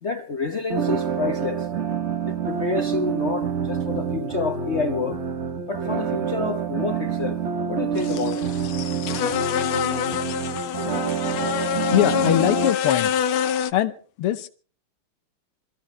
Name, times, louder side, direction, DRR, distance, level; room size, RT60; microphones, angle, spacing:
voice 1, 0.0-1.7 2.3-5.2 5.7-7.4 7.7-8.5 11.3-11.6, left 4 dB, 45° left, 1.0 m, -28 dB
sound 1, 0.7-12.7, right 7 dB, 45° right, 0.9 m, -27 dB
sound 2, 8.0-13.7, left 8 dB, 75° left, 1.7 m, -26 dB
voice 2, 11.9-13.1 13.4-14.5, left 12 dB, 90° left, 1.9 m, -23 dB
26.5 x 15.0 x 3.2 m
omnidirectional pair, 2.4 m